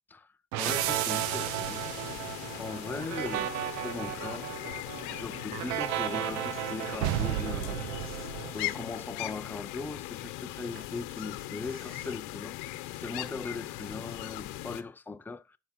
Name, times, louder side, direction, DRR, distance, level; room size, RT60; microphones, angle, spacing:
sound 1, 0.5-9.0, right 14 dB, 85° right, 0.7 m, -33 dB
sound 2, 0.6-14.8, left 17 dB, 70° left, 0.9 m, -39 dB
voice 1, 0.6-1.8 2.6-4.5 5.1-8.3 8.5-15.6, left 3 dB, 5° left, 0.4 m, -39 dB
sound 3, 2.1-2.3 2.6-4.2 4.7-4.8 5.0-5.2 5.5-5.9 6.1-7.1 7.5-8.8 9.2-9.3 9.6-9.7 10.6-14.1 14.9-15.0, right 3 dB, 30° right, 2.1 m, -54 dB
9.5 x 4.9 x 6.0 m
supercardioid pair, 115°, 42 cm